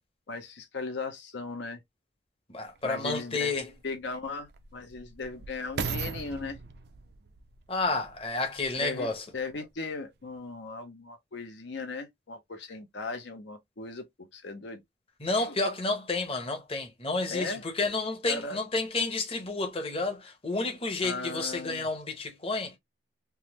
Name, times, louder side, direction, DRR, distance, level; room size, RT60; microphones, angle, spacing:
voice 1, 0.3-1.8 2.8-3.6 3.8-6.6 8.8-14.8 15.3-15.5 17.3-17.6 18.3-18.6 21.0-21.8, left 3 dB, 65° left, 0.6 m, -37 dB
voice 2, 2.5-3.7 7.7-9.2 15.2-22.8, left 3 dB, 30° left, 0.9 m, -30 dB
sound 1, 2.8-2.9 3.6-8.9 9.5-9.6, right 5 dB, 55° right, 0.4 m, -39 dB
3.5 x 2.0 x 2.9 m
head